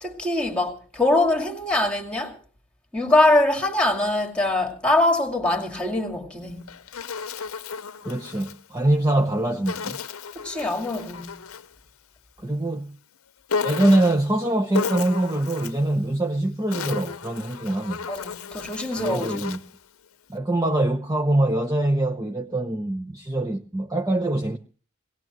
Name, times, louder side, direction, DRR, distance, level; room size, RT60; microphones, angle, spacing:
voice 1, 0.0-2.4 2.9-6.7 10.3-11.4 18.1-19.5, left 2 dB, 5° left, 2.3 m, -23 dB
Insect, 6.4-8.6 9.7-11.7 13.5-14.3 14.7-15.9 16.5-19.8, left 5 dB, 85° left, 0.8 m, -33 dB
voice 2, 8.0-10.0 12.4-12.9 13.6-18.0 19.0-19.6 20.3-24.6, right 1 dB, 15° right, 0.8 m, -23 dB
22.5 x 18.0 x 3.0 m
head